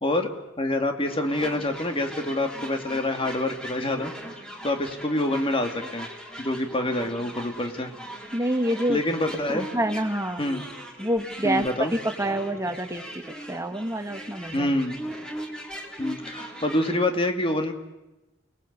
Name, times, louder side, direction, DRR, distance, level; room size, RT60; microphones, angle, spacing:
voice 1, 0.6-4.1 4.6-6.1 6.4-7.9 8.9-9.7 10.4-10.7 11.4-11.9 14.5-15.0 16.0-17.7, left 1 dB, 30° left, 5 dB, 2.3 m, -26 dB
sound 1, 1.0-17.0, right 1 dB, 5° left, 3.4 m, -39 dB
voice 2, 8.3-9.0 9.5-10.4 11.0-11.6 11.9-14.7, right 1 dB, 15° right, 6 dB, 1.6 m, -27 dB
29.0 x 21.0 x 8.2 m, 1.0 s
head